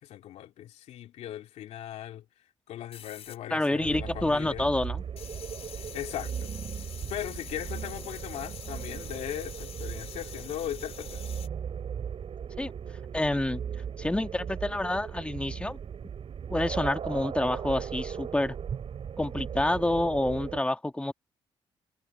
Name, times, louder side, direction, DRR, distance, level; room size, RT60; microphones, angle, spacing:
voice 1, 0.0-2.2 2.7-4.7 5.9-6.5 7.1-11.2, left 12 dB, 85° left, 2.7 m, -38 dB
sound 1, 2.9-4.2 4.4-11.5, left 9 dB, 70° left, 4.6 m, -46 dB
voice 2, 3.5-5.0 12.6-12.7 13.1-13.6 14.0-15.8 16.5-18.5 19.2-21.1, left 1 dB, 10° left, 1.6 m, -28 dB
sound 2, 3.8-20.6, right 7 dB, 60° right, 6.4 m, -37 dB
cardioid pair, 70°, 11 cm